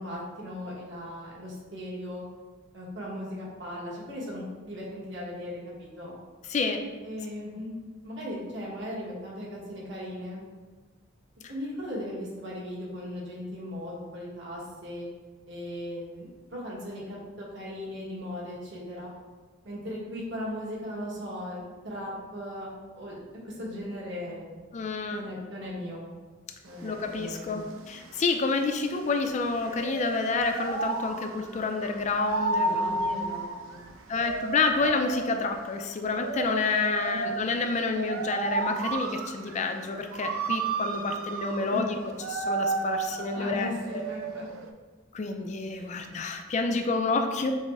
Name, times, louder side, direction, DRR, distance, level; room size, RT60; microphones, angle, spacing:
voice 1, 0.0-2.2 2.7-6.2 7.0-7.7 8.0-10.5 11.5-15.1 15.5-19.1 19.6-24.6 25.1-26.0 26.6-27.5 32.5-33.8 37.1-37.3 41.6-41.8 43.3-44.4 45.7-45.9, equal, 65° right, -5 dB, 1.2 m, -38 dB
voice 2, 6.5-6.9 24.7-25.2 26.8-33.2 34.1-42.0 42.3-43.7 45.1-47.5, left 3 dB, 35° left, 5 dB, 0.4 m, -29 dB
sound 1, 26.7-44.7, right 3 dB, 90° right, 0.4 m, -33 dB
6.2 x 2.1 x 3.5 m, 1.4 s
head